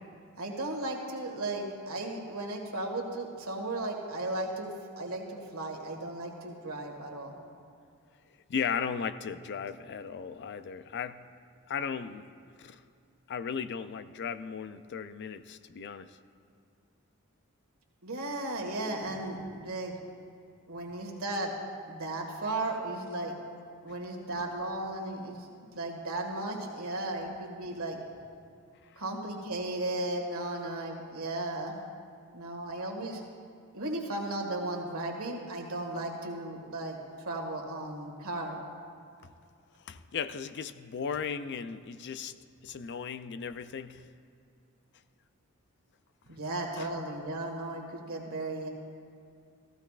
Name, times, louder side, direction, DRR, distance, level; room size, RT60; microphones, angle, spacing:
voice 1, 0.4-7.4 18.0-19.9 20.7-21.6 21.9-23.3 23.8-25.5 25.7-28.0 29.0-31.7 32.3-33.2 33.7-38.6 46.3-48.7, right 2 dB, 70° right, 0 dB, 1.7 m, -35 dB
voice 2, 8.5-11.2 11.7-12.3 12.6-12.8 13.3-16.2 39.2-39.3 39.9-42.4 42.6-44.0 46.8-46.9, left 6 dB, 50° left, 12 dB, 0.4 m, -36 dB
15.0 x 15.0 x 2.4 m, 2.4 s
head